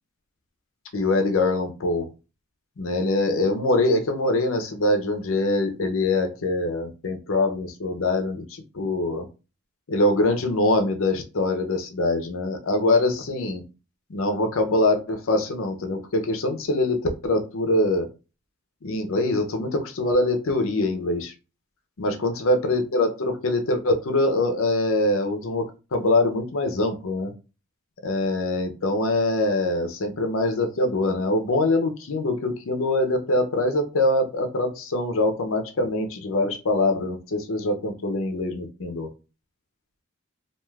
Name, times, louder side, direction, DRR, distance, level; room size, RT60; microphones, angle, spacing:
voice 1, 0.9-2.1 2.8-9.3 9.9-13.6 14.1-18.1 18.8-21.3 22.0-25.7 25.9-27.3 28.0-39.1, left 2 dB, 65° left, 6 dB, 0.6 m, -23 dB
3.2 x 2.4 x 2.3 m, 0.31 s
head